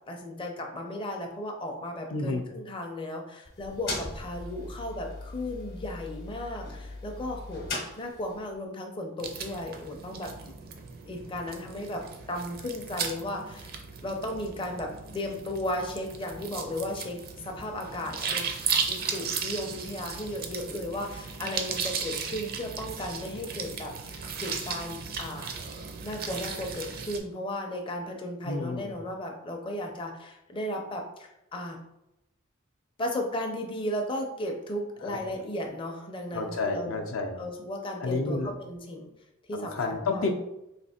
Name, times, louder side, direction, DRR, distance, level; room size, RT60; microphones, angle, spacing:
voice 1, 0.1-10.3 11.1-13.7 14.0-18.5 18.9-25.5 26.0-31.8 33.0-37.0 37.4-39.1 39.5-40.3, left 1 dB, 25° left, 2 dB, 0.5 m, -35 dB
voice 2, 2.1-2.4 28.4-28.9 35.0-35.2 36.3-37.4 38.0-38.5 39.5-40.3, left 3 dB, 70° left, 4 dB, 0.5 m, -30 dB
sound 1, 3.5-8.5, left 2 dB, 45° left, 0.9 m, -39 dB
sound 2, 9.2-27.2, right 5 dB, 45° right, 0.5 m, -36 dB
3.3 x 2.9 x 4.2 m, 0.88 s
head